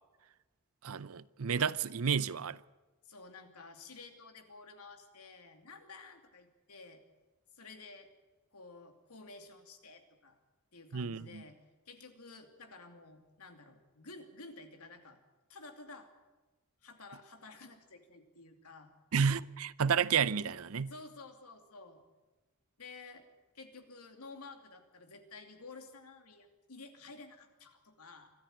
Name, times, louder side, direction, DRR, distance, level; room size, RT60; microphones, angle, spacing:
voice 1, 0.8-2.6 10.9-11.4 19.1-20.9, right 6 dB, 75° right, 0.6 m, -31 dB
voice 2, 3.0-7.0 7.5-8.1 8.5-10.4 10.7-11.6 11.9-15.2 15.5-16.1 16.8-18.9 20.8-22.0 22.8-23.3 23.5-28.3, left 3 dB, 85° left, 2.7 m, -52 dB
24.5 x 13.5 x 9.1 m
head